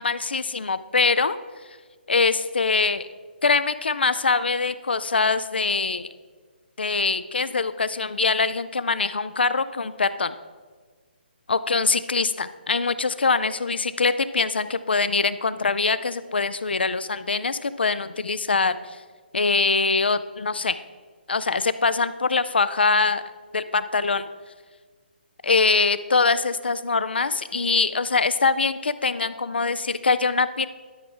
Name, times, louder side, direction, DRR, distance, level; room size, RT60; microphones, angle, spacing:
voice 1, 0.0-1.4 1.7-1.8 2.1-3.1 3.4-6.1 6.8-10.3 11.5-19.0 19.3-20.8 21.3-23.2 23.5-24.3 25.4-30.7, left 4 dB, 70° left, 14 dB, 0.4 m, -23 dB
12.5 x 4.7 x 3.8 m, 1.5 s
figure-of-eight pair, 140°, 6 cm